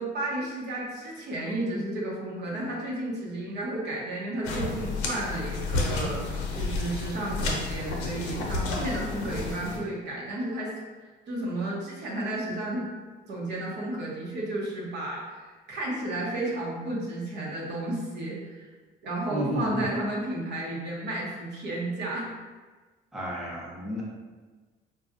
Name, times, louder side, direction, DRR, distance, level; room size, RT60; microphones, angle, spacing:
voice 1, 0.0-10.7 11.3-12.9 13.3-18.7 19.0-22.3, right 1 dB, 60° right, -4 dB, 0.9 m, -32 dB
sound 1, 4.4-9.8, left 3 dB, 90° left, 0.7 m, -31 dB
voice 2, 19.3-19.8 23.1-24.0, equal, ahead, -6 dB, 0.8 m, -31 dB
3.9 x 2.3 x 2.6 m, 1.3 s
cardioid pair, 95°, 20 cm